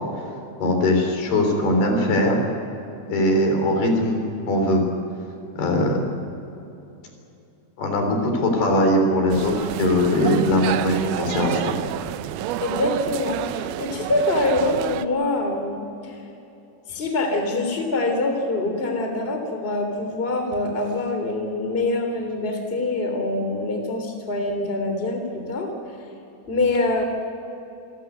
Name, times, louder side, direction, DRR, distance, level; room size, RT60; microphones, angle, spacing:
voice 1, 0.6-2.4 3.1-4.8 5.6-6.0 7.8-11.8, left 1 dB, 75° left, 3 dB, 5.6 m, -20 dB
sound 1, 9.3-15.1, right 13 dB, 80° right, 2.5 m, -30 dB
voice 2, 12.6-16.2 16.9-25.7 26.5-27.0, left 2 dB, 15° left, 4 dB, 3.1 m, -25 dB
28.0 x 15.0 x 9.4 m, 2.8 s
omnidirectional pair, 4.6 m